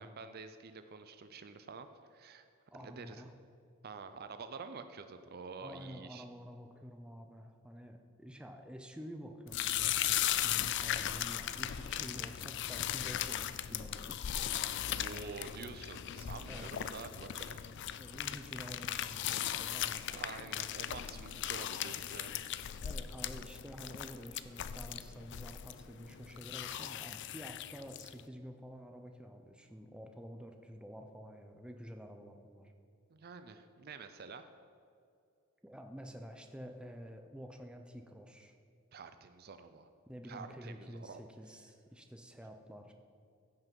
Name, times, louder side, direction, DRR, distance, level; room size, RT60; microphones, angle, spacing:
voice 1, 0.0-2.5 2.8-3.2 3.8-6.2 14.9-17.6 20.1-22.4 33.1-34.5 38.9-39.9 40.3-41.2, right 4 dB, 45° right, 10 dB, 0.5 m, -48 dB
voice 2, 2.7-3.3 5.6-14.3 15.0-15.3 16.5-16.7 18.0-20.5 22.8-32.7 35.6-38.5 40.1-42.9, equal, 5° right, 4 dB, 0.6 m, -49 dB
sound 1, 9.5-28.2, left 11 dB, 55° left, 0.4 m, -38 dB
15.5 x 5.9 x 5.3 m, 2.4 s
head